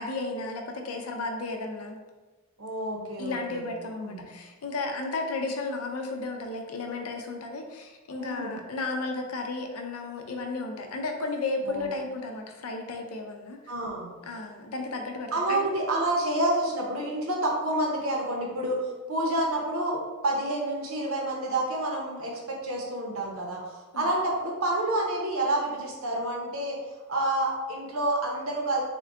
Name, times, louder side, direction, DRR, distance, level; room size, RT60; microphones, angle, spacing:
voice 1, 0.0-2.0 3.2-13.7 14.3-15.6 23.9-24.1, left 3 dB, 85° left, 3 dB, 0.5 m, -33 dB
voice 2, 2.6-4.3 8.2-8.5 11.6-11.9 13.7-14.1 15.3-26.8 27.1-28.8, right 1 dB, 70° right, -1 dB, 0.8 m, -29 dB
3.6 x 2.2 x 3.5 m, 1.3 s
head